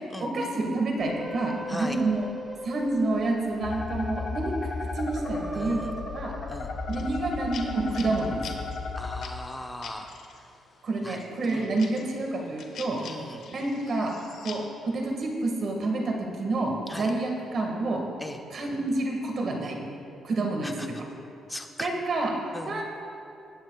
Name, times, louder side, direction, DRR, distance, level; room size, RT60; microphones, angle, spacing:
voice 1, 0.2-2.3 2.6-4.5 4.9-6.3 6.9-8.4 10.8-13.0 13.5-14.1 14.4-14.6 14.9-18.0 18.5-19.8 20.2-20.9 21.8-22.3 22.7-22.8, right 2 dB, 55° right, 1 dB, 1.8 m, -28 dB
sound 1, 1.0-7.6 8.1-9.0, equal, 15° right, 0.7 m, -41 dB
sound 2, 3.6-9.2, left 3 dB, 50° left, 1.1 m, -34 dB
voice 2, 5.5-5.9 6.5-6.7 9.0-10.1 11.0-11.2 11.5-11.6 13.0-13.5 16.9-17.1 18.2-18.4 20.6-20.7 21.5-21.9 22.5-22.7, left 1 dB, 10° left, 4 dB, 0.9 m, -38 dB
sound 3, 6.9-10.4 10.9-14.7, left 6 dB, 70° left, 1.1 m, -44 dB
19.0 x 9.0 x 2.4 m, 2.7 s
cardioid pair, 90°, 0 cm